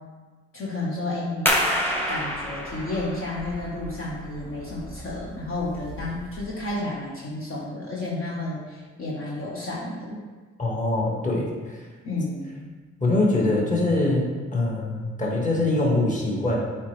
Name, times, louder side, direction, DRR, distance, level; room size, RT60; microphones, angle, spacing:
voice 1, 0.5-1.5 2.1-10.2 12.0-12.7, left 2 dB, 45° left, -6 dB, 1.5 m, -31 dB
sound 1, 1.5-6.8, equal, 5° left, 1.4 m, -29 dB
voice 2, 10.6-11.8 13.0-16.6, left 2 dB, 25° left, -3 dB, 1.9 m, -23 dB
8.2 x 4.6 x 3.4 m, 1.4 s
cardioid pair, 90°, 30 cm